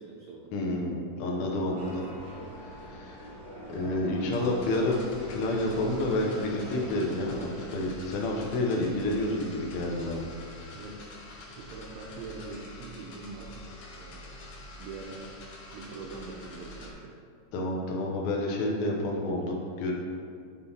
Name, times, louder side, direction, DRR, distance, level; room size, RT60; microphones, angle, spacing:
voice 1, 0.0-0.5 10.7-11.1 11.5-13.5 13.9-15.3 15.7-17.1, right 3 dB, 85° right, -2 dB, 1.6 m, -43 dB
voice 2, 0.5-2.0 2.6-3.3 3.7-5.0 5.3-10.3 17.5-19.9, left 1 dB, 85° left, -2 dB, 1.2 m, -29 dB
sound 1, 1.8-7.5, equal, 40° right, 1.1 m, -44 dB
sound 2, 4.2-16.9, left 1 dB, 60° left, 1.9 m, -46 dB
8.4 x 3.8 x 4.2 m, 2.3 s
omnidirectional pair, 3.9 m